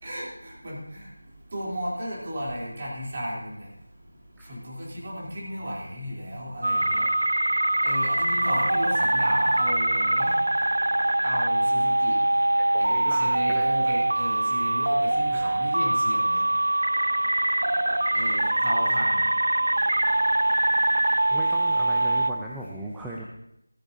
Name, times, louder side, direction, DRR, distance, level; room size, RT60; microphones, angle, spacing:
voice 1, 0.0-1.1 1.5-3.7 4.5-7.0 7.8-10.3 11.2-12.1 12.8-16.4 18.1-19.2, equal, 30° right, -5 dB, 3.3 m, -33 dB
sound 1, 6.6-22.3, right 1 dB, 80° right, 0.6 m, -23 dB
voice 2, 12.6-13.7 15.3-15.6 21.3-23.2, right 1 dB, 5° right, -4 dB, 0.4 m, -38 dB
14.0 x 13.5 x 2.8 m, 0.80 s
figure-of-eight pair, 175°, 0 cm